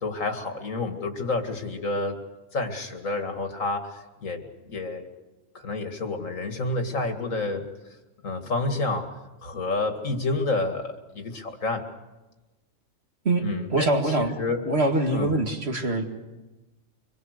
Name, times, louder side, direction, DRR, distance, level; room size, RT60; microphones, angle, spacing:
voice 1, 0.0-2.2 2.5-5.1 5.5-7.7 8.2-9.1 9.4-11.9 13.4-14.6 15.1-15.4, left 3 dB, 85° left, 5 dB, 2.5 m, -29 dB
voice 2, 13.7-14.3 14.7-16.0, right 2 dB, 55° right, 3 dB, 2.5 m, -24 dB
25.5 x 22.0 x 6.6 m, 1.1 s
omnidirectional pair, 1.3 m